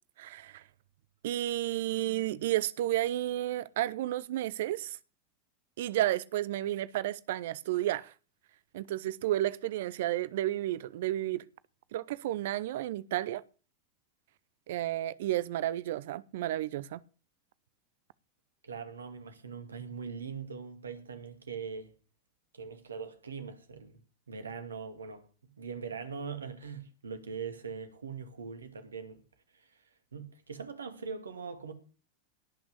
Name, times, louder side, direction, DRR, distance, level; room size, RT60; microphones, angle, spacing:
voice 1, 0.2-0.6 1.2-5.0 5.8-8.1 8.7-11.4 11.9-13.4 14.7-17.0, right 14 dB, 65° right, 0.7 m, -32 dB
voice 2, 18.6-21.9 22.5-24.0 24.3-25.3 25.6-29.2 30.1-31.7, right 5 dB, 80° right, 2.3 m, -41 dB
18.0 x 6.1 x 8.2 m
figure-of-eight pair, 90°, 0 cm